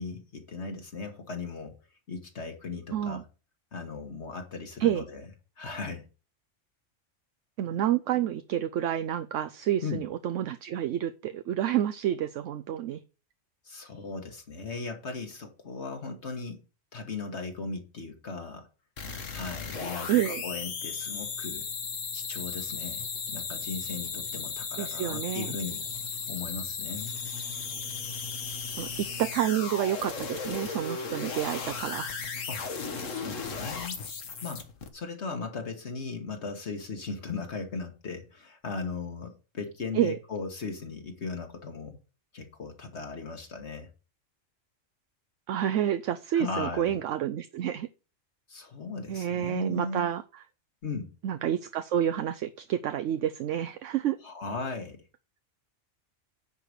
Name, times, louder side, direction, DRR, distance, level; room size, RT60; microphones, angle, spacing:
voice 1, 0.0-1.8 2.1-3.2 3.7-5.3 5.6-6.1 9.8-10.0 13.6-16.6 16.9-18.7 19.3-21.7 22.1-25.8 26.3-27.1 32.5-32.7 33.1-34.0 34.4-34.7 34.9-42.0 42.3-43.9 46.3-47.0 48.5-50.1 50.8-51.1 54.2-55.0, left 4 dB, 60° left, 1.7 m, -37 dB
voice 2, 2.9-3.2 4.8-5.0 7.6-13.0 20.1-20.4 24.8-25.5 28.8-32.1 39.9-40.2 45.5-47.9 49.1-50.2 51.2-54.2, right 11 dB, 75° right, 0.9 m, -29 dB
sound 1, 19.0-34.9, left 5 dB, 75° left, 1.6 m, -36 dB
9.9 x 4.8 x 6.6 m
omnidirectional pair, 1.3 m